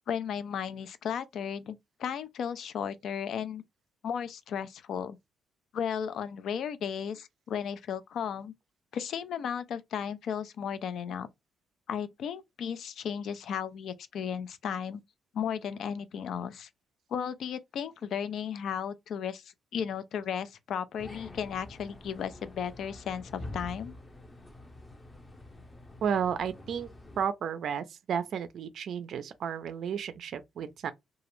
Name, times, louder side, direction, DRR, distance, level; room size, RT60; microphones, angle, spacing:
voice 1, 0.1-3.6 4.0-5.2 5.7-8.5 8.9-11.3 11.9-15.0 15.3-16.7 17.1-24.0, left 8 dB, 70° left, 0.4 m, -35 dB
sound 1, 21.0-27.3, left 2 dB, 20° left, 0.6 m, -46 dB
voice 2, 26.0-26.9 27.2-30.9, right 7 dB, 65° right, 0.3 m, -32 dB
2.3 x 2.0 x 3.0 m
cardioid pair, 90°, 0 cm